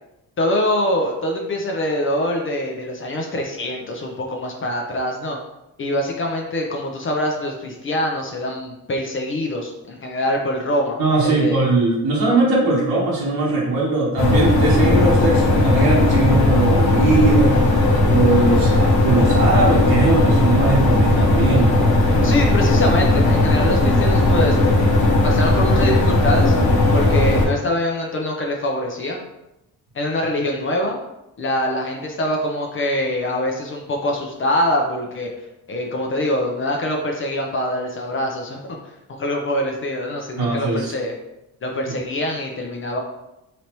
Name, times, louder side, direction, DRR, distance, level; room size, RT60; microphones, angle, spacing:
voice 1, 0.4-5.4 5.8-11.0 11.2-11.6 22.2-24.6 25.2-26.5 26.9-29.2 29.9-31.0 31.4-35.3 35.7-38.8 39.1-41.1 41.6-43.0, left 1 dB, 35° left, 1 dB, 0.6 m, -24 dB
voice 2, 11.0-17.7 18.1-21.7 22.1-22.3 40.4-40.9, right 2 dB, 90° right, -5 dB, 1.2 m, -19 dB
sound 1, 14.2-27.4, left 2 dB, 85° left, 1.1 m, -16 dB
4.0 x 3.2 x 2.9 m, 0.90 s
cardioid pair, 145°, 36 cm